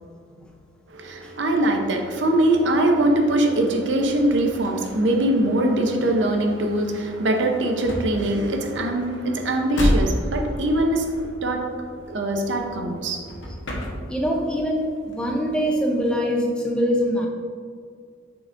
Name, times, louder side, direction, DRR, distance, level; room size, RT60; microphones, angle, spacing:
voice 1, 0.9-11.1 11.4-11.7 12.1-13.2, right 1 dB, 70° right, 3 dB, 0.7 m, -22 dB
sound 1, 3.7-13.0 13.3-14.5 14.8-16.3, equal, 80° left, 1.1 m, -31 dB
voice 2, 14.1-17.3, equal, 5° left, -1 dB, 0.6 m, -23 dB
9.0 x 4.9 x 2.6 m, 2.1 s
head